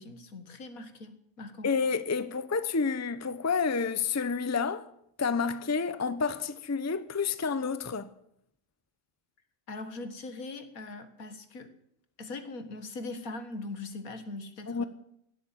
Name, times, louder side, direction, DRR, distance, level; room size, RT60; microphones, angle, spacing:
voice 1, 0.0-1.7 9.7-11.7 12.2-14.9, left 3 dB, 85° left, 2.0 m, -41 dB
voice 2, 1.6-4.9 5.2-8.1 14.7-14.8, left 5 dB, 15° left, 0.5 m, -29 dB
17.0 x 8.5 x 9.8 m
omnidirectional pair, 1.5 m